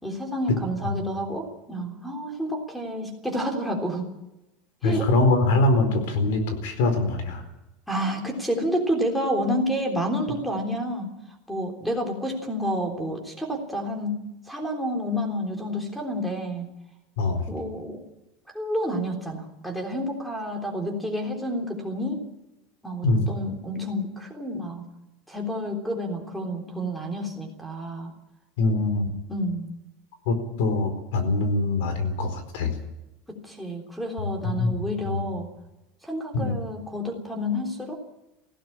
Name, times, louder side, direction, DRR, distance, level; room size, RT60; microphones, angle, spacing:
voice 1, 0.0-4.1 4.8-5.1 7.9-11.1 11.5-16.7 17.5-18.0 18.5-22.2 22.8-24.8 25.3-28.1 29.3-29.7 33.3-35.5 36.0-37.9, equal, ahead, 3 dB, 3.4 m, -29 dB
voice 2, 4.8-7.4 17.2-17.5 23.0-23.3 28.6-29.1 30.3-32.7 34.4-34.7 35.1-35.2 36.3-36.5, left 2 dB, 80° left, 9 dB, 4.3 m, -23 dB
19.0 x 16.5 x 8.7 m, 0.94 s
cardioid pair, 170°, 0 cm